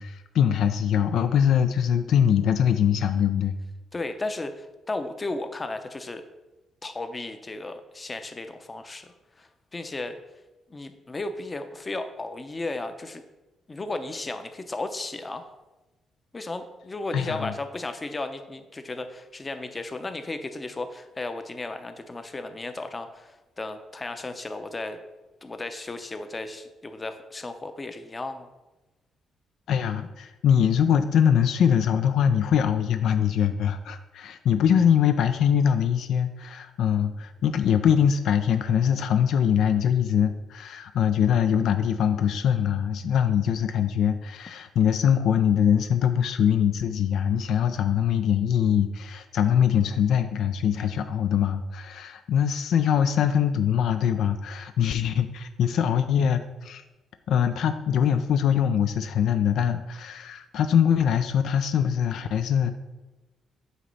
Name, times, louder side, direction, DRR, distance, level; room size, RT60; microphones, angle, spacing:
voice 1, 0.0-3.6 17.1-17.5 29.7-56.8 57.3-62.7, left 8 dB, 75° left, 9 dB, 0.4 m, -23 dB
voice 2, 3.9-6.2 6.8-10.2 10.7-13.2 13.7-15.5 16.3-25.0 25.4-28.5, left 2 dB, 25° left, 8 dB, 0.7 m, -34 dB
8.1 x 2.9 x 5.4 m, 1.1 s
cardioid pair, 90°, 0 cm